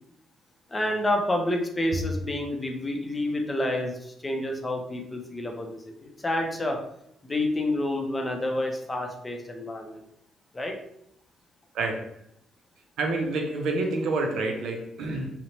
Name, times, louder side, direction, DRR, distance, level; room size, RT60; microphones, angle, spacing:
voice 1, 0.7-6.8 7.2-10.0 10.5-10.8, left 1 dB, 20° left, 2 dB, 0.5 m, -29 dB
voice 2, 11.7-12.1 13.0-15.3, right 2 dB, 75° right, 3 dB, 0.5 m, -28 dB
2.6 x 2.1 x 2.9 m, 0.73 s
cardioid pair, 90°, 0 cm